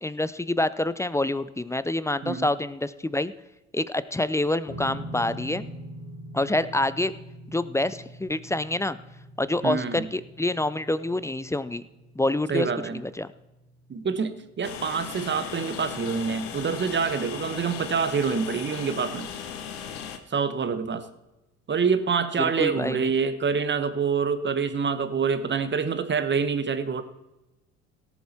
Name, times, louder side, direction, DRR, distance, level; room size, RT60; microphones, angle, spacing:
voice 1, 0.0-3.3 3.7-5.7 6.3-7.1 7.5-9.0 9.4-11.8 12.2-13.3 22.4-23.1, left 2 dB, 10° left, 16 dB, 0.5 m, -27 dB
sound 1, 4.7-17.2, right 1 dB, 40° left, 3.3 m, -44 dB
voice 2, 9.6-10.1 12.5-13.0 13.9-19.3 20.3-21.0 21.7-27.0, right 5 dB, 30° right, 11 dB, 1.2 m, -26 dB
Train, 14.6-20.2, left 8 dB, 80° left, 1.1 m, -37 dB
17.5 x 7.3 x 4.4 m, 0.99 s
hypercardioid pair, 60°, 36 cm